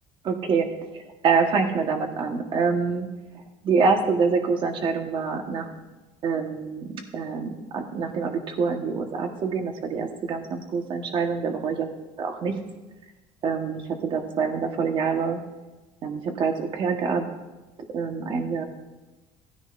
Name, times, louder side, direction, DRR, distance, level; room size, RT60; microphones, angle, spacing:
voice 1, 0.2-3.1 3.3-5.7 6.2-6.9 7.1-11.9 12.2-12.5 13.4-15.4 16.0-17.3 17.9-18.6, right 5 dB, 45° right, 4 dB, 1.4 m, -26 dB
16.0 x 10.0 x 2.6 m, 1.1 s
cardioid pair, 130°, 12 cm